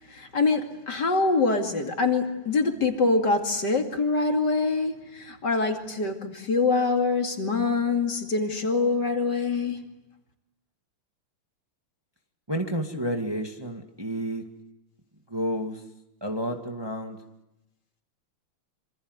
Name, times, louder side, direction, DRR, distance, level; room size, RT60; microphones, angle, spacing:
voice 1, 0.1-9.8, left 3 dB, 50° left, 4 dB, 3.1 m, -25 dB
voice 2, 12.5-14.4 15.3-15.8 16.2-17.2, equal, 10° right, 3 dB, 2.1 m, -30 dB
27.5 x 26.5 x 8.1 m, 0.90 s
omnidirectional pair, 2.4 m